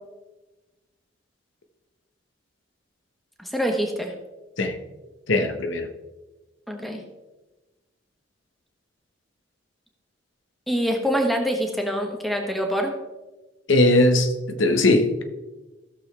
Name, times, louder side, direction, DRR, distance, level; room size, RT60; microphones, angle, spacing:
voice 1, 3.4-4.1 6.7-7.0 10.7-12.9, equal, ahead, 2 dB, 1.1 m, -25 dB
voice 2, 5.3-5.9 13.7-15.2, left 2 dB, 80° left, 7 dB, 1.1 m, -19 dB
15.5 x 6.7 x 3.3 m, 1.1 s
head